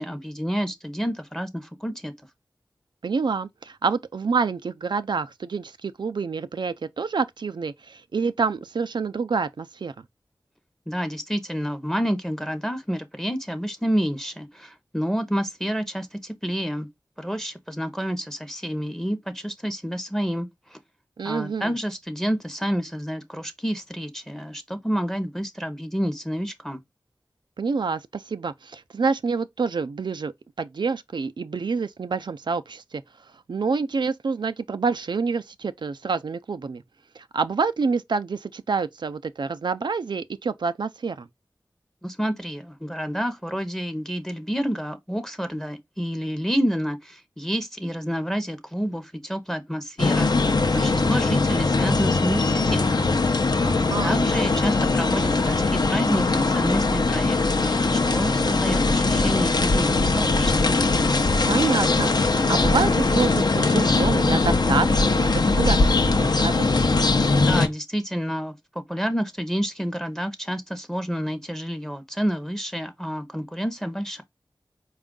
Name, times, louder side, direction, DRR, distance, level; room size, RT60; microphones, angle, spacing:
voice 1, 0.0-2.1 10.9-16.9 17.2-20.8 21.2-26.8 42.0-50.3 50.7-53.1 54.0-60.8 67.5-74.2, equal, 5° left, 0.7 m, -29 dB
voice 2, 3.0-9.9 21.2-21.7 27.6-30.3 30.6-33.0 33.5-36.8 37.2-41.3 53.6-54.2 61.5-65.9 66.2-66.7, right 5 dB, 70° right, 0.4 m, -27 dB
sound 1, 50.0-67.7, left 3 dB, 60° left, 0.6 m, -21 dB
4.3 x 2.4 x 3.6 m
cardioid pair, 40°, 8 cm